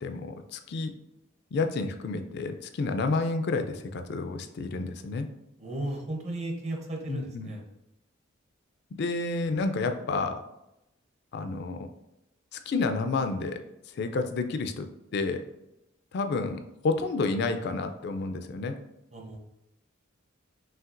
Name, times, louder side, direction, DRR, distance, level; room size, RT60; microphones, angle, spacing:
voice 1, 0.0-0.9 1.5-5.3 7.1-7.5 9.0-10.4 11.3-11.9 12.5-13.6 13.9-14.9 15.1-15.4 16.1-18.8, left 3 dB, 55° left, 7 dB, 0.3 m, -30 dB
voice 2, 5.6-7.6 19.1-19.4, right 1 dB, 35° right, 1 dB, 0.7 m, -35 dB
5.7 x 2.8 x 2.5 m, 0.87 s
head